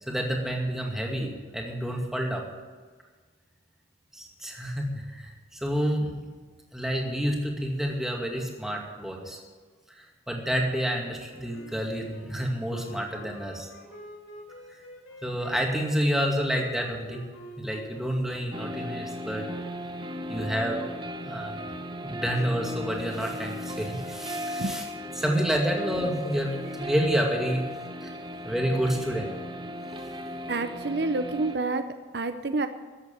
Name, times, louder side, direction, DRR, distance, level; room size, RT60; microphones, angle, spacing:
voice 1, 0.0-2.4 4.1-6.3 6.7-9.4 10.0-13.7 14.7-14.8 15.2-17.3 17.6-19.4 20.3-21.6 22.0-24.8 25.2-27.6 28.0-28.1 28.4-29.4, equal, ahead, 0 dB, 2.2 m, -29 dB
sound 1, 10.9-20.1, equal, 90° left, 3.5 m, -48 dB
sound 2, 18.5-31.6, equal, 25° right, 1.0 m, -36 dB
voice 2, 30.5-32.7, right 3 dB, 55° right, 9 dB, 0.7 m, -28 dB
14.0 x 8.1 x 9.1 m, 1.5 s
head